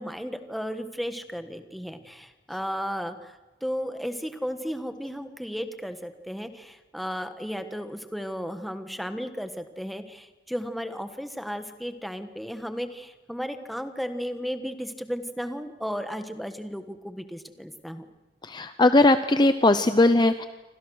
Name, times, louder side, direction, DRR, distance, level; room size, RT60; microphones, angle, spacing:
voice 1, 0.0-18.0, equal, ahead, 8 dB, 1.4 m, -34 dB
voice 2, 18.5-20.4, left 2 dB, 25° left, 10 dB, 0.7 m, -19 dB
28.5 x 25.5 x 6.4 m, 1.1 s
head